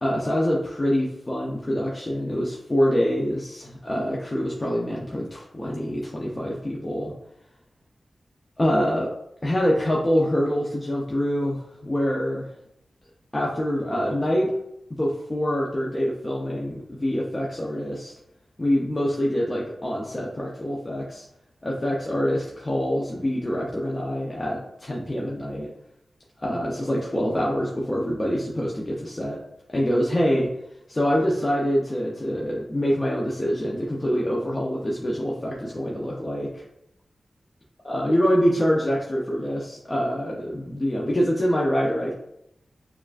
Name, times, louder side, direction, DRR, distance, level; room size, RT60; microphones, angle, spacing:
voice 1, 0.0-7.1 8.6-9.1 9.4-12.5 13.3-14.5 15.0-18.1 18.6-21.2 21.6-25.7 26.4-29.4 29.7-30.5 30.9-36.6 37.8-42.1, equal, 25° left, -4 dB, 0.5 m, -25 dB
6.9 x 2.4 x 2.4 m, 0.81 s
wide cardioid pair, 110°, 0 cm